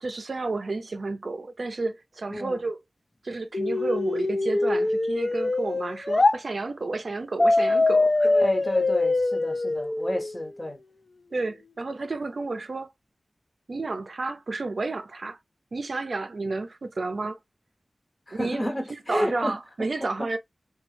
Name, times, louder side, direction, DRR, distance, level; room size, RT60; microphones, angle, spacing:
voice 1, 0.0-2.8 3.2-8.3 11.3-12.9 13.7-15.4 15.7-17.4 18.3-20.4, right 3 dB, 65° right, 0.4 m, -31 dB
voice 2, 2.3-2.7 8.2-10.8 18.3-19.6 20.2-20.4, equal, 25° left, 1.0 m, -31 dB
sound 1, 3.5-6.4 7.4-10.4, left 2 dB, 45° left, 0.5 m, -23 dB
3.0 x 2.2 x 3.1 m
wide cardioid pair, 70°, 0 cm